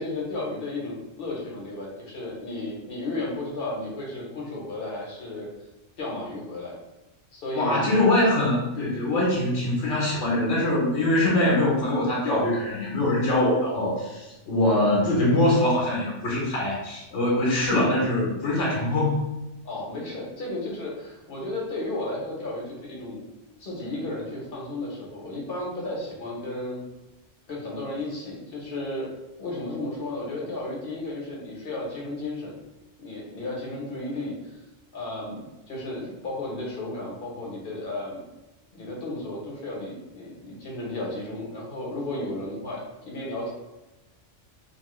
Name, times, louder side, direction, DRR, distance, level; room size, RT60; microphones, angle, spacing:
voice 1, 0.0-5.5 6.0-6.7 7.3-7.9 19.6-23.2 23.6-26.8 27.5-29.1 29.4-32.5 33.0-34.6 34.9-38.2 38.7-43.5, left 2 dB, 50° left, -3 dB, 1.0 m, -33 dB
voice 2, 7.5-19.2, left 1 dB, 75° left, -4 dB, 1.0 m, -23 dB
2.9 x 2.4 x 3.0 m, 1.0 s
omnidirectional pair, 1.2 m